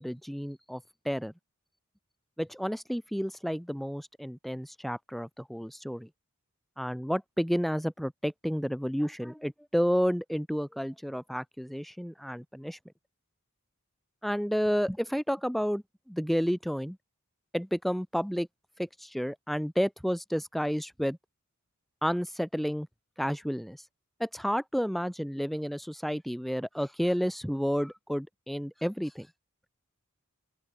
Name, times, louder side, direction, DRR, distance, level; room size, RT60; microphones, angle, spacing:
voice 1, 0.0-1.3 2.4-6.1 6.8-12.8 14.2-17.0 17.5-18.5 18.8-21.2 22.0-22.9 23.2-23.9 24.2-29.3, equal, ahead, 4.0 m, -31 dB
open air
head